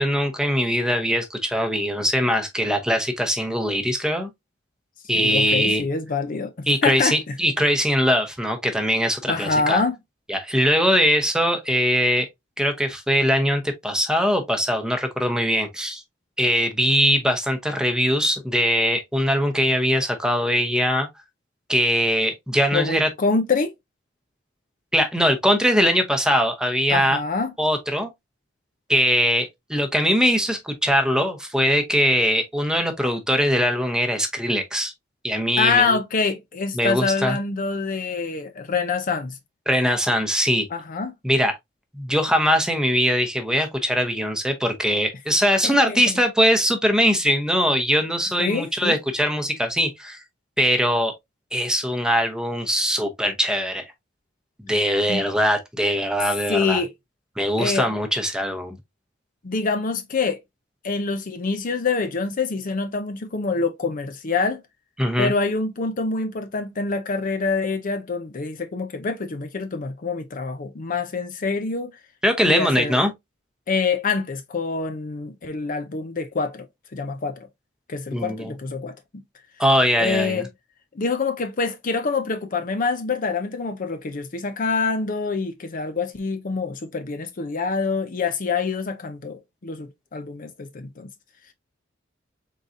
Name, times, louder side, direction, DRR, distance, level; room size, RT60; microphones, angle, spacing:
voice 1, 0.0-4.3 5.1-5.8 6.7-9.8 10.3-12.3 12.6-16.0 16.4-21.1 21.7-23.1 24.9-27.2 27.6-28.1 28.9-34.9 35.2-36.0 36.7-37.4 39.7-40.7 41.2-41.5 41.9-50.2 50.6-51.1 51.5-53.8 54.6-56.8 57.4-58.8 65.0-65.3 72.2-73.1 78.1-78.5 79.6-80.5, equal, 5° right, 0.8 m, -21 dB
voice 2, 5.1-7.4 9.3-10.0 22.7-23.7 26.9-27.5 35.6-39.4 40.7-41.1 45.6-46.0 48.4-49.0 55.1-55.2 56.5-56.9 57.6-57.9 59.4-60.4 60.8-64.6 65.2-71.9 72.5-73.0 73.7-76.7 76.9-77.5 77.9-78.9 80.0-80.5 80.9-91.1, left 4 dB, 45° left, 0.6 m, -25 dB
4.0 x 3.7 x 2.6 m
head